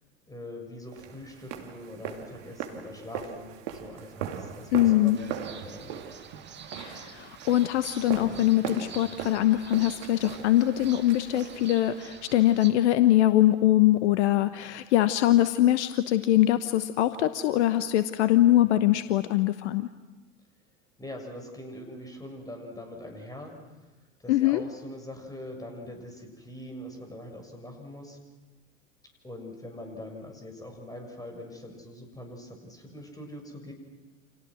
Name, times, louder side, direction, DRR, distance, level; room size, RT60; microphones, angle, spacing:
voice 1, 0.3-6.0 21.0-23.5 24.2-28.2 29.2-33.7, left 1 dB, 10° left, 4 dB, 6.7 m, -43 dB
sound 1, 0.9-12.0, right 8 dB, 50° right, 2.8 m, -40 dB
voice 2, 4.7-5.2 6.7-19.9 24.3-24.6, left 14 dB, 55° left, 12 dB, 1.1 m, -23 dB
sound 2, 5.1-12.7, right 7 dB, 25° right, 2.6 m, -47 dB
30.0 x 27.0 x 6.3 m, 1.2 s
figure-of-eight pair, 80°, 40 cm